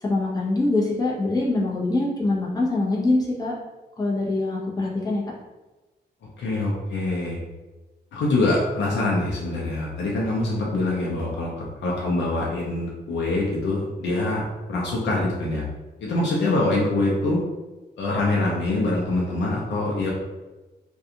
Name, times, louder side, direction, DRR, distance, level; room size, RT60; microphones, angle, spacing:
voice 1, 0.0-3.5 4.0-5.2, left 2 dB, 20° left, -4 dB, 0.7 m, -24 dB
voice 2, 6.4-7.4 8.1-14.4 14.7-15.6 16.0-17.4 18.0-20.1, left 2 dB, 90° left, -3 dB, 0.5 m, -24 dB
2.4 x 2.2 x 2.7 m, 1.1 s
cardioid pair, 110°, 18 cm